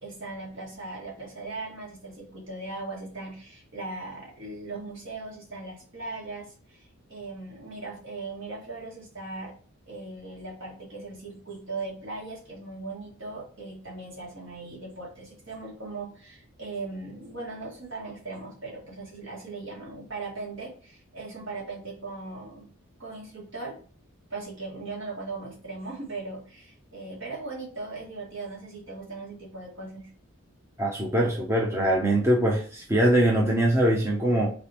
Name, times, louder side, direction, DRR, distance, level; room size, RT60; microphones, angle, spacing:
voice 1, 0.0-9.5 9.9-22.7 23.0-23.8 24.3-30.1, right 3 dB, 55° right, -3 dB, 1.9 m, -39 dB
voice 2, 30.8-34.5, right 1 dB, 10° right, -2 dB, 0.6 m, -22 dB
4.1 x 3.7 x 2.9 m, 0.41 s
head